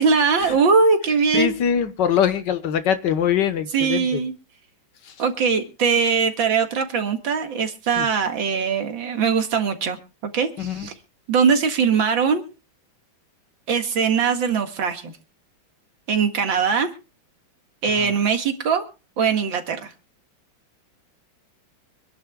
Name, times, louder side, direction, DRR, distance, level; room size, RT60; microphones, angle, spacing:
voice 1, 0.0-1.5 3.7-4.3 5.2-10.9 11.3-12.4 13.7-15.1 16.1-16.9 17.8-18.8 19.2-19.9, right 5 dB, 75° right, 2.5 m, -21 dB
voice 2, 1.3-4.2 8.0-8.1 10.6-10.9 18.0-18.2, left 8 dB, 65° left, 1.8 m, -23 dB
26.0 x 11.0 x 2.3 m
omnidirectional pair, 2.1 m